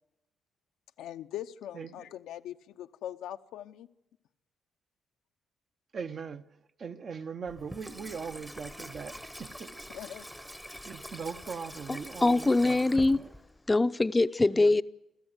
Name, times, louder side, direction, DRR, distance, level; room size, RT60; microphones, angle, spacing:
voice 1, 1.0-3.9 9.9-10.3, left 11 dB, 85° left, 0.9 m, -41 dB
voice 2, 1.7-2.1 5.9-9.8 10.8-13.3 14.5-14.8, right 6 dB, 50° right, 1.1 m, -40 dB
Water tap faucet / Sink (filling or washing), 7.5-13.7, equal, ahead, 1.0 m, -45 dB
voice 3, 11.9-13.2 13.7-14.8, left 2 dB, 20° left, 0.7 m, -24 dB
30.0 x 13.5 x 8.2 m
cardioid pair, 90°, 0 cm